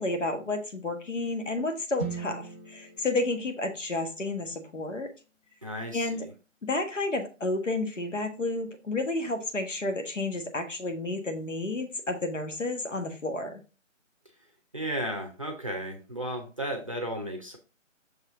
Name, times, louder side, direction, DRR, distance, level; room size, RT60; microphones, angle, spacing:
voice 1, 0.0-5.1 5.9-6.3 6.6-13.6, left 2 dB, 70° left, 6 dB, 1.7 m, -31 dB
sound 1, 2.0-6.0, right 5 dB, 15° left, 0.7 m, -42 dB
voice 2, 5.6-6.1 14.7-17.6, right 1 dB, 25° right, 3 dB, 0.7 m, -34 dB
6.5 x 4.6 x 3.7 m, 0.32 s
figure-of-eight pair, 160°, 39 cm